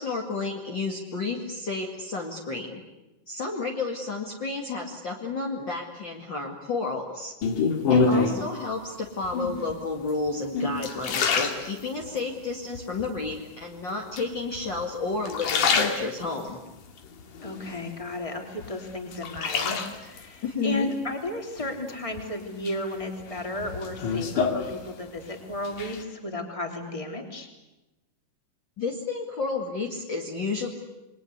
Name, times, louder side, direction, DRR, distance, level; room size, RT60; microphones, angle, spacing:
voice 1, 0.0-2.8 3.3-7.3 7.9-16.6 20.4-20.9 28.8-30.7, left 3 dB, 35° left, 0 dB, 2.7 m, -31 dB
sound 1, 7.4-8.5 9.2-9.7 10.3-12.2 12.7-13.4 14.2-14.8 15.2-16.5 17.0-18.2 18.6-20.2 21.6-22.2 22.6-25.3 25.5-26.0, left 4 dB, 70° left, 3.6 m, -27 dB
voice 2, 7.9-8.3 17.4-27.5, left 1 dB, 10° left, 3 dB, 3.3 m, -34 dB
28.5 x 23.0 x 8.2 m, 1.0 s
omnidirectional pair, 3.8 m